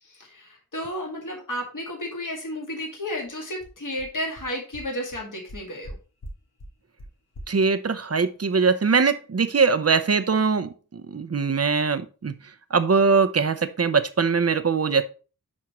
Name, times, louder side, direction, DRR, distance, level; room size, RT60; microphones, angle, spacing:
voice 1, 0.0-6.0, left 1 dB, 55° left, 0 dB, 2.3 m, -32 dB
sound 1, 3.2-3.3 3.6-3.7 4.0-4.1 4.4-4.5 4.7-4.8 5.1-5.2 5.5-5.9 6.2-6.3 6.6-6.7 7.0-7.1 7.3-7.4, equal, 85° left, 1.6 m, -39 dB
voice 2, 7.5-12.3 12.7-15.0, right 5 dB, 40° right, 11 dB, 0.7 m, -22 dB
10.5 x 3.7 x 3.0 m, 0.35 s
wide cardioid pair, 55°, 37 cm